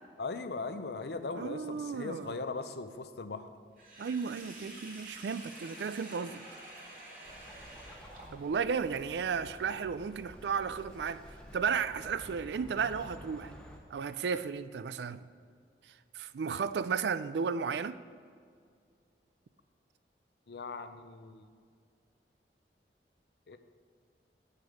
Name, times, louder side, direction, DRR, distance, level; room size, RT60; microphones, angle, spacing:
voice 1, 0.2-3.5 20.5-21.5 23.5-23.6, left 3 dB, 70° left, 9 dB, 0.6 m, -39 dB
voice 2, 1.3-2.3 4.0-6.4 8.3-11.2 11.5-13.5 13.9-15.3 16.1-18.0, right 6 dB, 75° right, 14 dB, 0.4 m, -34 dB
Sink (filling or washing), 3.8-8.7, right 2 dB, 50° right, 1.9 m, -49 dB
Bird, 7.2-13.8, equal, 5° left, 0.9 m, -51 dB
8.8 x 6.6 x 5.0 m, 2.2 s
head